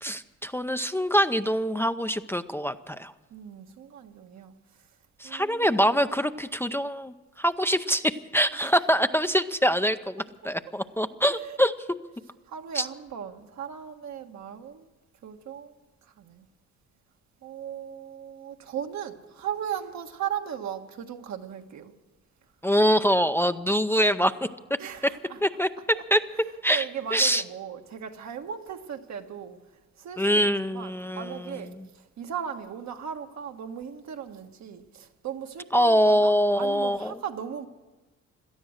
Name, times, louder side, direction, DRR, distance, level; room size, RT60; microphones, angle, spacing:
voice 1, 0.0-3.1 5.2-11.7 12.7-12.9 22.6-24.3 25.4-25.7 26.1-26.2 26.6-26.8 27.1-27.4 30.2-31.4 35.7-37.1, equal, 10° left, 0.5 m, -24 dB
voice 2, 3.3-4.9 5.2-5.8 8.5-8.7 11.4-11.6 12.4-14.9 15.2-16.5 17.4-21.9 24.8-25.4 25.9-26.0 26.3-26.4 26.7-37.7, right 8 dB, 65° right, 1.4 m, -37 dB
18.0 x 12.5 x 6.5 m
cardioid pair, 90°, 30 cm